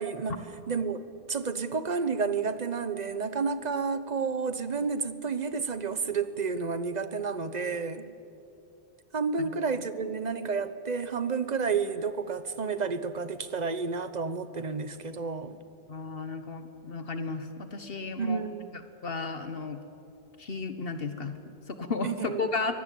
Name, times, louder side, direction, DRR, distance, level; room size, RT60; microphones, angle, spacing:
voice 1, 0.0-8.1 9.1-15.6 18.2-18.7 22.0-22.5, right 5 dB, 45° right, 12 dB, 1.1 m, -31 dB
voice 2, 15.9-18.4 18.7-19.8 20.4-22.8, left 4 dB, 65° left, 9 dB, 1.4 m, -34 dB
23.5 x 19.0 x 8.5 m, 2.7 s
omnidirectional pair, 1.1 m